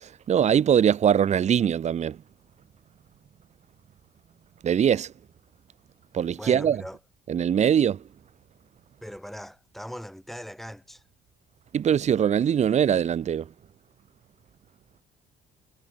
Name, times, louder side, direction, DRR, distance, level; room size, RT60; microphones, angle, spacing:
voice 1, 0.0-2.2 4.6-5.1 6.1-6.8 7.3-8.0 11.7-13.5, right 8 dB, 40° right, 1.0 m, -22 dB
voice 2, 6.3-7.0 9.0-11.0, equal, ahead, 4.2 m, -40 dB
cardioid pair, 110°, 17 cm